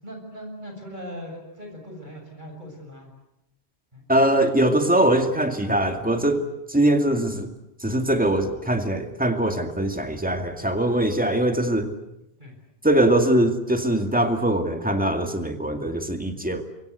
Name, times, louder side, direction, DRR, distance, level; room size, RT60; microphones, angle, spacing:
voice 1, 0.0-3.1 3.9-4.0 12.4-12.6, equal, 45° right, 3 dB, 7.3 m, -39 dB
voice 2, 4.1-6.4 6.7-7.5 7.8-11.9 12.8-16.6, right 1 dB, 10° right, 6 dB, 2.2 m, -22 dB
27.0 x 24.0 x 8.2 m, 0.86 s
omnidirectional pair, 1.1 m